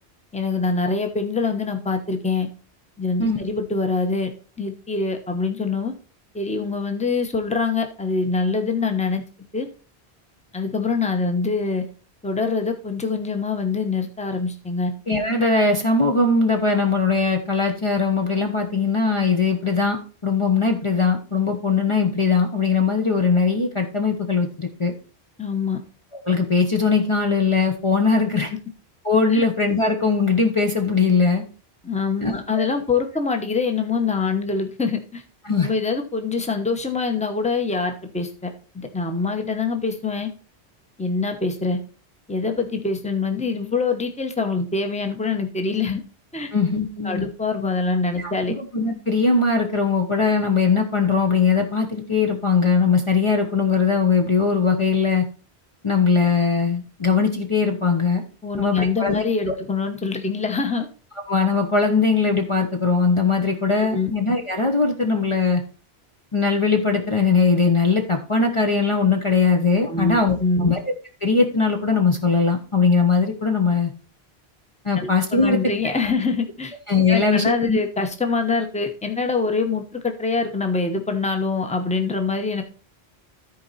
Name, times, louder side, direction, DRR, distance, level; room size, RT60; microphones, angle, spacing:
voice 1, 0.3-2.5 3.0-4.3 4.6-5.9 6.3-9.2 9.5-9.7 10.5-11.8 12.2-14.9 25.4-25.8 28.4-28.6 29.3-29.4 31.8-35.2 35.6-40.3 41.0-41.8 42.3-46.0 46.3-46.5 47.0-48.5 58.4-60.9 63.7-64.1 69.9-70.7 74.9-76.7 77.1-82.6, left 4 dB, 5° left, 5 dB, 1.0 m, -24 dB
voice 2, 15.1-24.9 26.3-28.5 29.0-31.4 32.2-32.7 35.5-35.7 46.5-47.2 48.2-55.3 55.8-58.2 58.6-59.2 61.3-65.6 66.3-70.8 71.2-73.9 74.8-75.6 76.9-77.8, left 4 dB, 30° left, 1 dB, 1.0 m, -20 dB
13.5 x 4.6 x 4.1 m, 0.37 s
omnidirectional pair, 1.1 m